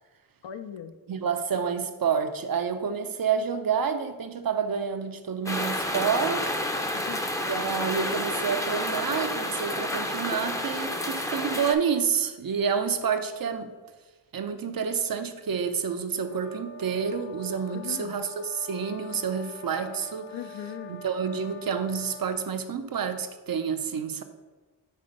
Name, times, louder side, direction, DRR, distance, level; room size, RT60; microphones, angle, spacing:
voice 1, 0.4-0.9 6.9-7.2 17.7-18.1 20.3-21.0, left 8 dB, 70° left, 10 dB, 0.6 m, -38 dB
voice 2, 1.1-6.5 7.5-13.7 14.3-20.4 20.9-24.2, right 6 dB, 50° right, 9 dB, 0.6 m, -29 dB
sound 1, 5.5-11.7, left 1 dB, 5° left, 0.5 m, -30 dB
sound 2, 16.2-22.5, left 2 dB, 45° left, 0.9 m, -44 dB
5.5 x 3.4 x 5.2 m, 1.2 s
cardioid pair, 65°, 45 cm